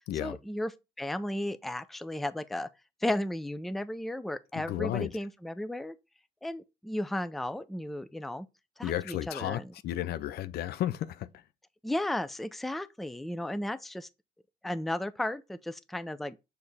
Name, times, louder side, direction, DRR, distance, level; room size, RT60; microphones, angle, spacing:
voice 1, 0.2-0.7 1.0-2.7 3.0-6.0 6.4-8.5 8.8-9.7 11.8-14.1 14.6-16.4, left 1 dB, ahead, 0.4 m, -34 dB
voice 2, 4.6-5.1 8.8-11.4, left 12 dB, 70° left, 0.6 m, -33 dB
6.7 x 3.5 x 4.0 m
cardioid pair, 110°, 17 cm